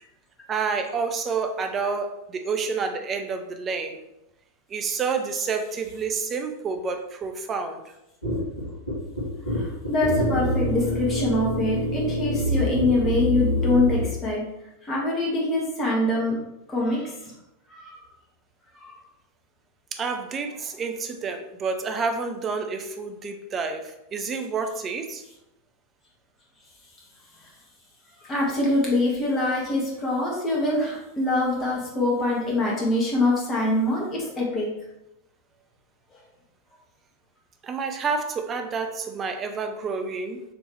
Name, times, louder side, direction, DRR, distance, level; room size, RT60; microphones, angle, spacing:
voice 1, 0.5-4.0 4.7-7.9 19.9-25.2 37.6-40.4, right 5 dB, 25° right, 6 dB, 0.5 m, -29 dB
sound 1, 8.2-14.1, left 1 dB, 80° left, 1.3 m, -26 dB
voice 2, 9.5-14.4 14.8-16.3 16.7-17.1 17.7-18.0 18.7-18.9 28.2-34.7, left 2 dB, 25° left, -4 dB, 1.4 m, -24 dB
5.1 x 3.1 x 3.1 m, 0.87 s
figure-of-eight pair, 90°, 0 cm